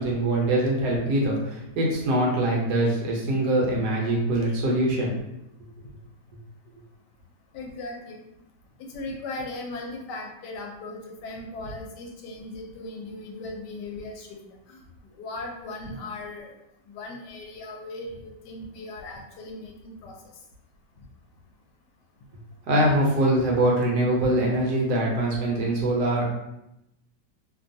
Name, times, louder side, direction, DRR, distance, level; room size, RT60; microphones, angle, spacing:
voice 1, 0.0-5.2 22.7-26.2, right 1 dB, 70° right, -2 dB, 1.2 m, -23 dB
voice 2, 7.5-8.2 8.8-14.4 14.7-14.8 15.2-16.5 16.9-20.1, left 2 dB, 80° left, 1 dB, 1.2 m, -38 dB
2.9 x 2.2 x 2.6 m, 0.86 s
omnidirectional pair, 1.8 m